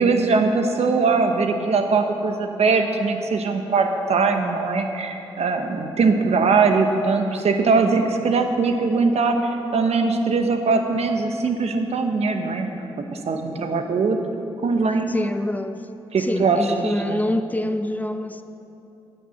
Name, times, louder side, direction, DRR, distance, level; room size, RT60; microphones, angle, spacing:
voice 1, 0.0-12.7 13.3-14.2 14.6-15.1 16.1-17.2, right 4 dB, 80° right, 5 dB, 1.0 m, -21 dB
voice 2, 15.1-15.8 16.2-18.4, left 1 dB, 15° left, 9 dB, 0.7 m, -26 dB
9.9 x 6.7 x 8.7 m, 3.0 s
cardioid pair, 60°, 11 cm